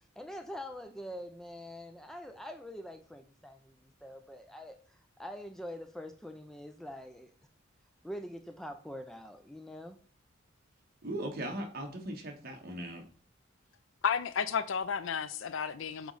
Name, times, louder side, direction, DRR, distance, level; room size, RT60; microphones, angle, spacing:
voice 1, 0.2-7.3 8.0-10.0, equal, ahead, 0.4 m, -44 dB
voice 2, 11.0-13.0, right 1 dB, 50° right, 1.3 m, -38 dB
voice 3, 14.0-16.1, left 7 dB, 75° left, 0.5 m, -32 dB
8.2 x 3.1 x 4.0 m
head